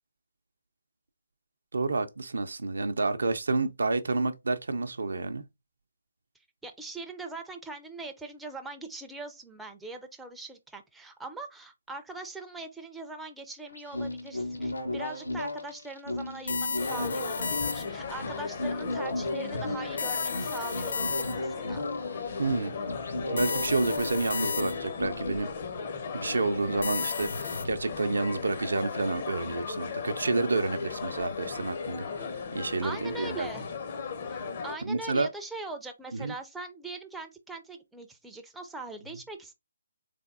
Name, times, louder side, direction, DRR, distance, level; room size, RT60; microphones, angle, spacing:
voice 1, 1.7-5.4 22.4-22.7 23.3-25.5 26.1-32.1 32.5-33.5 34.9-35.3 36.1-36.3, right 3 dB, 70° right, 0.5 m, -29 dB
voice 2, 6.6-21.9 32.8-33.6 34.3-39.5, right 2 dB, 5° right, 0.5 m, -41 dB
sound 1, 13.7-25.4, left 1 dB, 85° left, 1.0 m, -35 dB
sound 2, 16.5-18.1 20.0-21.6 23.4-25.0 26.8-27.7, left 5 dB, 60° left, 0.3 m, -34 dB
sound 3, 16.8-34.8, left 5 dB, 45° left, 0.8 m, -36 dB
3.8 x 3.4 x 2.5 m
figure-of-eight pair, 145°, 0 cm